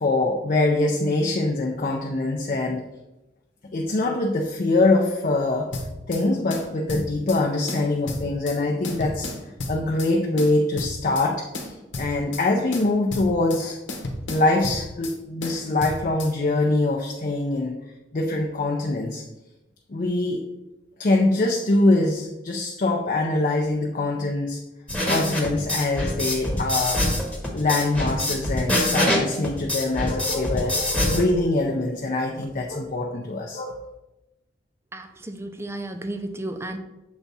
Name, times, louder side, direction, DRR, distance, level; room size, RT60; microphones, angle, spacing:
voice 1, 0.0-2.9 3.7-5.7 6.1-9.3 9.7-13.8 14.3-17.8 18.1-19.2 19.9-20.4 21.0-24.6 25.1-27.1 27.5-33.8, left 2 dB, 45° left, 1 dB, 0.5 m, -23 dB
sound 1, 5.7-6.2 6.5-7.4 7.7-8.6 8.8-10.1 10.4-11.3 11.5-12.4 12.7-13.6 13.9-15.2 15.4-16.3, left 2 dB, 85° left, 1.1 m, -33 dB
sound 2, 24.9-31.2, left 1 dB, 5° left, 1.0 m, -24 dB
voice 2, 34.9-36.8, right 1 dB, 15° right, 6 dB, 0.5 m, -33 dB
7.0 x 3.5 x 4.1 m, 1.0 s
head